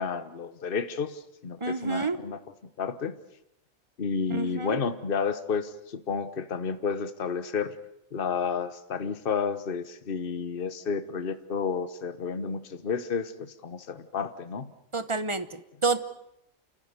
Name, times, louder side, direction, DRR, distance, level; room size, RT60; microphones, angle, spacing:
voice 1, 0.0-2.4 2.8-3.2 4.0-7.7 8.1-14.7, left 5 dB, 45° left, 12 dB, 1.3 m, -31 dB
voice 2, 1.6-2.2 4.3-4.8 14.9-16.0, right 4 dB, 25° right, 12 dB, 1.1 m, -29 dB
29.0 x 15.0 x 9.7 m, 0.81 s
omnidirectional pair, 1.4 m